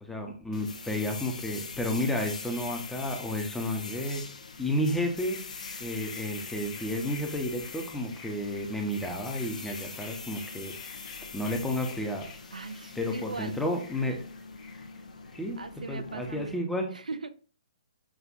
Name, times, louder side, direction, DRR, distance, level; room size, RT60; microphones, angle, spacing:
voice 1, 0.0-4.2 4.6-5.4 5.8-11.0 11.3-12.3 13.0-14.2 15.3-15.6 15.9-16.9, left 1 dB, 5° left, 2 dB, 0.7 m, -31 dB
sound 1, 0.5-16.6, left 4 dB, 70° left, 0.6 m, -43 dB
sound 2, 5.2-16.3, left 5 dB, 25° left, 1.1 m, -52 dB
voice 2, 12.5-13.6 15.6-16.6 16.9-17.3, right 3 dB, 90° right, 10 dB, 0.4 m, -39 dB
6.1 x 2.5 x 2.4 m, 0.40 s
hypercardioid pair, 135°, 4 cm